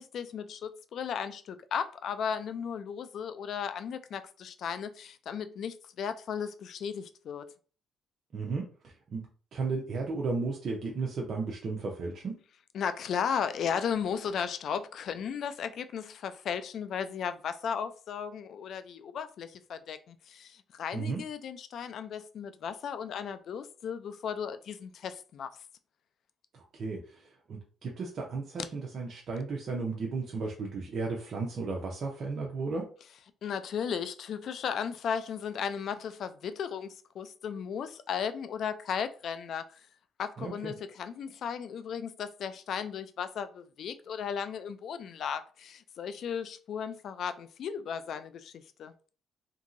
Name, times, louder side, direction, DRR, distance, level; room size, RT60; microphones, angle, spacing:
voice 1, 0.0-7.4 12.7-25.5 33.4-39.8 40.2-48.9, left 7 dB, 60° left, 0.3 m, -35 dB
voice 2, 8.3-12.4 20.9-21.2 26.5-32.9 40.4-40.7, right 4 dB, 55° right, 0.6 m, -34 dB
2.8 x 2.6 x 2.5 m
cardioid pair, 105°, 0 cm